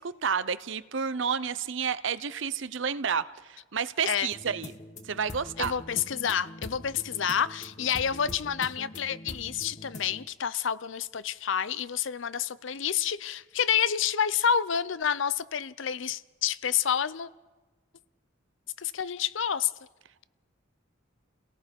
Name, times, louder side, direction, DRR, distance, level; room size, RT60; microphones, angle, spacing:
voice 1, 0.0-4.7 5.1-5.7, right 6 dB, 65° right, 0.7 m, -30 dB
sound 1, 4.3-10.3, left 2 dB, 35° left, 1.1 m, -43 dB
voice 2, 5.6-17.3 18.8-19.7, left 8 dB, 65° left, 0.6 m, -29 dB
29.5 x 18.0 x 5.3 m
head